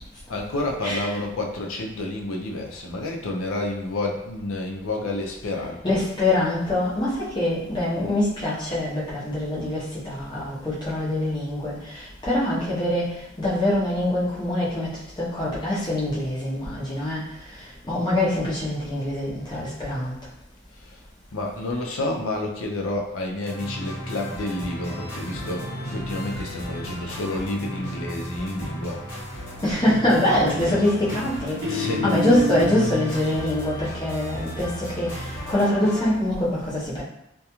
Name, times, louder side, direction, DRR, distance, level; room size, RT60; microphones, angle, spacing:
voice 1, 0.3-6.0 20.7-21.0 21.3-29.0 31.7-32.2, left 2 dB, 90° left, 1 dB, 0.5 m, -30 dB
voice 2, 5.8-17.3 17.9-20.1 29.6-37.0, left 1 dB, 20° left, -7 dB, 0.7 m, -24 dB
sound 1, 23.4-36.1, equal, 45° left, 1.1 m, -35 dB
Guitar, 24.8-28.3 29.9-30.2 30.5-33.4, left 1 dB, 55° right, 0.5 m, -32 dB
2.4 x 2.2 x 2.8 m, 0.86 s
head